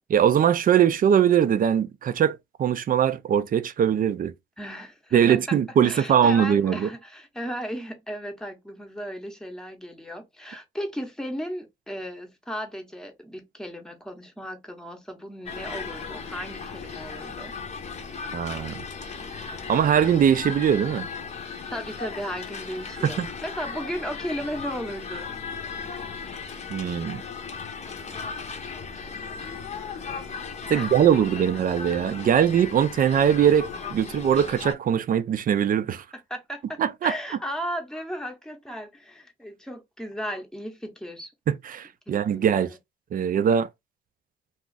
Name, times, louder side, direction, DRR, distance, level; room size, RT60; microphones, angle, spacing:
voice 1, 0.1-4.3 5.1-6.9 18.3-18.8 19.7-21.1 23.0-23.3 26.7-27.2 30.7-36.0 36.8-37.1 41.5-42.7 43.1-43.7, right 8 dB, 45° right, 0.4 m, -21 dB
voice 2, 4.6-5.6 5.8-17.5 21.7-25.3 30.7-31.0 36.3-41.3 42.1-42.8, equal, 5° left, 0.8 m, -35 dB
sound 1, 15.5-34.7, left 5 dB, 35° left, 0.7 m, -36 dB
2.4 x 2.4 x 3.9 m
cardioid pair, 90°, 20 cm